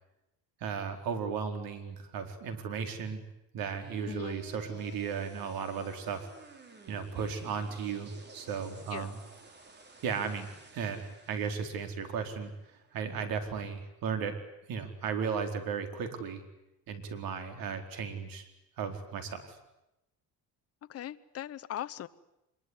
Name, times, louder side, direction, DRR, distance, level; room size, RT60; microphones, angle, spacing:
voice 1, 0.6-3.2 3.5-6.3 6.9-9.2 10.0-12.5 12.9-14.4 14.7-16.4 16.9-18.4 18.8-19.6, right 6 dB, 75° right, 4.4 m, -35 dB
sound 1, 3.6-13.6, right 3 dB, 30° right, 3.6 m, -53 dB
voice 2, 4.1-4.4 8.9-9.1 20.9-22.1, left 12 dB, 40° left, 1.0 m, -39 dB
25.0 x 22.5 x 9.8 m
cardioid pair, 150°, 35 cm